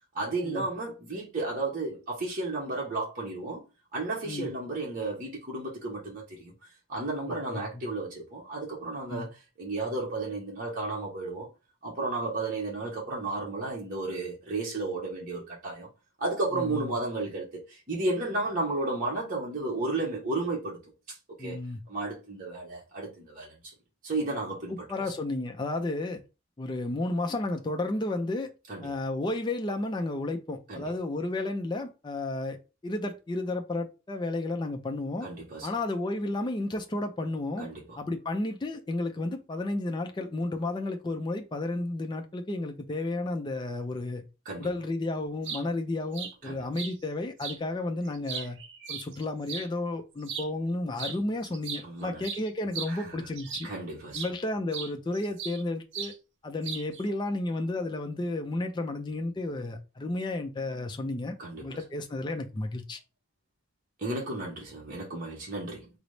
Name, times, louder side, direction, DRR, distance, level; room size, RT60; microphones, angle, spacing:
voice 1, 0.1-3.6 3.9-6.5 6.9-11.5 11.8-15.9 16.2-20.8 21.1-21.6 21.9-23.7 24.0-24.8 28.7-28.9 30.7-30.8 35.2-35.7 37.6-38.0 44.4-44.7 46.4-46.6 51.8-52.2 52.9-53.2 53.6-54.2 61.4-61.8 64.0-65.9, right 2 dB, 40° right, 0.8 m, -33 dB
voice 2, 7.3-7.6 9.1-9.3 16.5-17.0 21.4-21.8 24.7-26.2 26.6-28.5 28.8-35.3 35.6-37.7 38.0-44.2 44.6-48.6 48.9-53.7 54.1-56.1 56.4-61.4 61.6-63.0, left 2 dB, 20° left, 0.4 m, -32 dB
sound 1, 45.2-45.6 46.1-46.3 46.8-46.9 47.4-47.6 48.1-49.7 50.2-50.5 51.0-51.2 51.4-53.8 54.1-54.3 54.7-55.6 55.9-56.2 56.6-57.0, right 7 dB, 55° right, 0.5 m, -37 dB
3.9 x 2.0 x 3.1 m
head